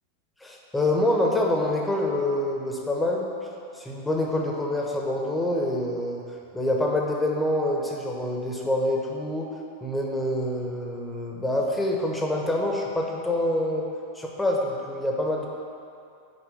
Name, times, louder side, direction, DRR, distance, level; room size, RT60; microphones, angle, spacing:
voice 1, 0.4-3.3 3.7-6.2 6.5-9.5 9.8-13.9 14.1-15.5, left 1 dB, 5° left, -1 dB, 1.2 m, -26 dB
6.9 x 5.3 x 6.6 m, 2.5 s
figure-of-eight pair, 90°, 0 cm